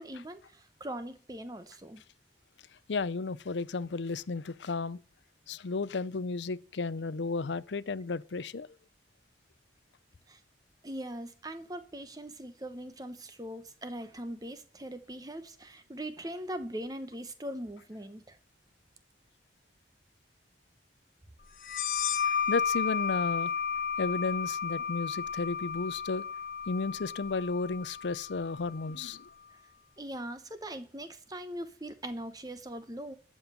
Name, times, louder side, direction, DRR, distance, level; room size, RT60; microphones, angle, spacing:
voice 1, 0.0-2.0 10.3-10.4 10.8-18.4 30.0-33.2, right 1 dB, 20° right, 1.0 m, -41 dB
voice 2, 2.9-5.0 5.5-8.8 22.2-23.5 24.0-26.2 26.7-29.3, left 4 dB, 90° left, 0.6 m, -33 dB
sound 1, 21.6-28.9, left 7 dB, 50° left, 1.2 m, -33 dB
13.0 x 5.5 x 8.9 m
head